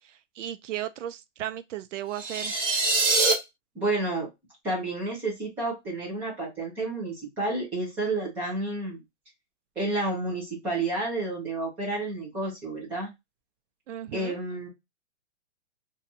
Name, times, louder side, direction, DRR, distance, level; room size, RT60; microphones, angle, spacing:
voice 1, 0.4-2.5 13.9-14.4, right 12 dB, 85° right, 0.6 m, -35 dB
sound 1, 2.1-3.3, right 3 dB, 30° right, 1.0 m, -24 dB
voice 2, 3.8-4.3 4.6-9.0 9.8-13.1 14.1-14.7, right 2 dB, 5° right, 0.4 m, -30 dB
2.6 x 2.3 x 4.0 m
hypercardioid pair, 160°, 36 cm